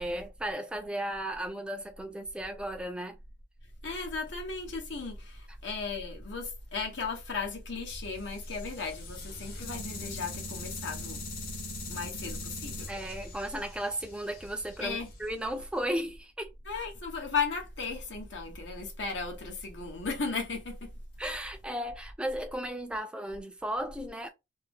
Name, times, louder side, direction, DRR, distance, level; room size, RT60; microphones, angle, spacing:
voice 1, 0.0-3.2 12.9-16.5 21.2-24.3, right 1 dB, 5° right, 0.4 m, -35 dB
voice 2, 3.8-11.2 11.9-12.9 14.8-15.1 16.6-20.9, left 4 dB, 80° left, 1.1 m, -35 dB
sound 1, 7.9-16.0, left 2 dB, 50° left, 0.9 m, -42 dB
2.8 x 2.1 x 3.4 m
head